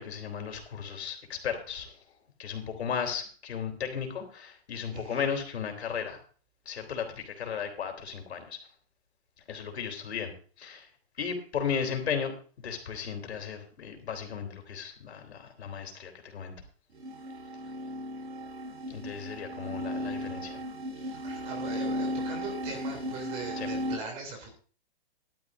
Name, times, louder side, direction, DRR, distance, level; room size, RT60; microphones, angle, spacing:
voice 1, 0.0-2.0 2.4-6.2 6.7-8.6 9.5-10.9 11.2-12.3 12.6-16.5 18.9-20.6 23.6-23.7, left 7 dB, 80° left, 4 dB, 3.6 m, -35 dB
voice 2, 4.9-5.3 19.1-19.3 21.0-24.5, right 3 dB, 20° right, 2 dB, 3.1 m, -40 dB
sound 1, 16.9-24.0, equal, 80° right, 5.5 m, -35 dB
16.0 x 12.0 x 2.7 m, 0.40 s
hypercardioid pair, 170°, 32 cm